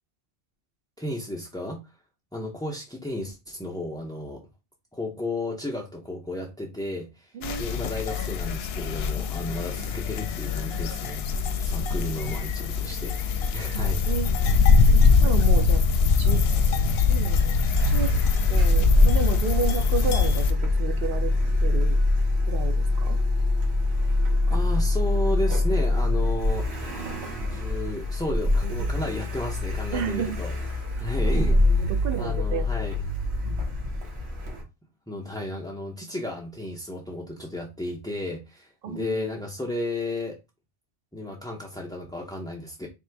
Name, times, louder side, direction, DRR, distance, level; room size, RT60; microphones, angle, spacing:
voice 1, 1.0-1.9 2.3-4.5 4.9-11.2 11.6-14.0 24.5-26.7 27.4-33.0 35.1-40.4 41.1-42.9, left 1 dB, 5° left, 0.4 m, -33 dB
sound 1, 7.4-20.5, left 5 dB, 75° left, 0.8 m, -22 dB
voice 2, 13.7-14.4 14.9-15.8 16.2-16.4 17.0-18.1 18.5-21.3 21.6-22.0 22.5-23.2 28.6-28.8 29.0-29.1 29.9-30.4 31.4-33.0 33.4-33.6 38.8-39.2, right 6 dB, 65° right, 0.9 m, -32 dB
Car, 17.7-34.6, left 2 dB, 85° right, 1.4 m, -24 dB
3.5 x 2.5 x 4.5 m
omnidirectional pair, 1.1 m